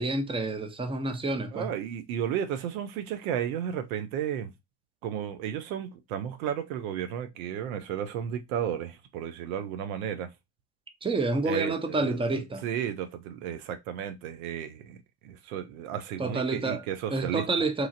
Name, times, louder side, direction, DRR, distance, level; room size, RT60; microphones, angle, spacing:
voice 1, 0.0-1.7 11.0-12.6 16.2-16.8 17.1-17.9, right 3 dB, 15° right, 0.7 m, -28 dB
voice 2, 1.5-4.5 5.0-10.3 11.5-15.0 15.2-17.5, right 9 dB, 80° right, 0.5 m, -33 dB
3.0 x 2.4 x 2.4 m
hypercardioid pair, 55°, 41 cm